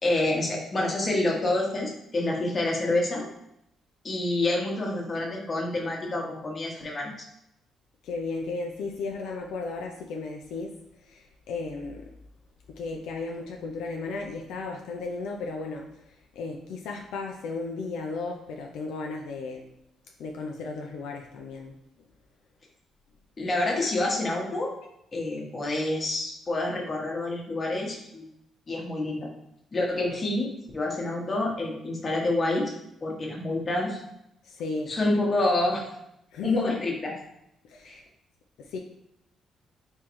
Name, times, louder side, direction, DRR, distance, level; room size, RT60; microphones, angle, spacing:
voice 1, 0.0-3.2 4.0-7.3 23.4-24.7 25.1-28.2 28.7-29.3 29.7-32.7 33.0-34.0 34.9-35.8 36.4-37.1 37.8-38.0, left 2 dB, 35° left, -1 dB, 1.0 m, -27 dB
voice 2, 8.0-12.1 12.7-19.7 20.2-21.7 34.4-34.9 36.3-36.8 37.6-38.0 38.6-38.8, left 3 dB, 85° left, 1 dB, 0.4 m, -35 dB
3.7 x 3.1 x 3.0 m, 0.80 s
cardioid pair, 90°, 0 cm